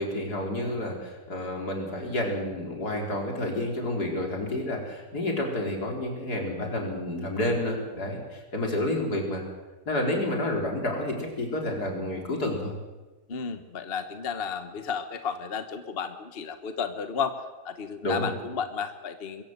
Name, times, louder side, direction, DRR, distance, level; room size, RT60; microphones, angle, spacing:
voice 1, 0.0-9.4 9.9-12.7 18.0-18.3, left 1 dB, 85° left, 1 dB, 4.6 m, -30 dB
voice 2, 13.3-19.4, left 6 dB, 40° left, 9 dB, 1.3 m, -33 dB
22.5 x 15.5 x 8.0 m, 1.2 s
omnidirectional pair, 1.6 m